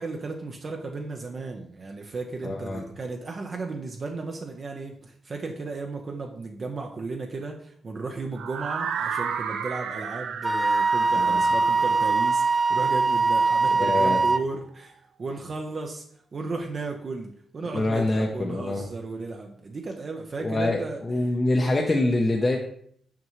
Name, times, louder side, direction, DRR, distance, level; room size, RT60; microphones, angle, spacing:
voice 1, 0.0-16.1 16.3-21.0, right 3 dB, 45° right, 2 dB, 0.7 m, -35 dB
voice 2, 2.4-2.8 11.2-11.4 13.7-14.2 17.7-18.9 20.4-22.6, left 2 dB, 30° left, 0 dB, 0.7 m, -25 dB
sound 1, 8.4-14.3, right 7 dB, 90° right, 0.6 m, -34 dB
Wind instrument woodwind instrument, 10.4-14.4, right 4 dB, 15° right, 0.3 m, -22 dB
5.9 x 5.3 x 3.1 m, 0.63 s
cardioid pair, 95°, 0 cm